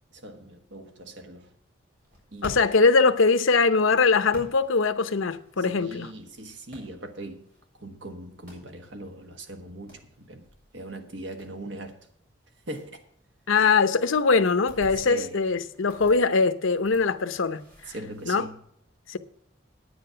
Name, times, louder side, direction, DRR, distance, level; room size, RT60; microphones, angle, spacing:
voice 1, 0.1-1.5 2.3-2.5 5.6-7.5 7.8-10.5 10.7-12.1 12.7-13.0 14.9-15.4 17.9-18.6, right 1 dB, 70° right, 1.4 m, -40 dB
sound 1, 2.0-18.4, equal, 50° right, 5.1 m, -51 dB
voice 2, 2.4-6.1 13.5-17.6 18.3-18.4 19.1-19.2, left 4 dB, 90° left, 0.8 m, -22 dB
9.7 x 9.6 x 5.7 m
head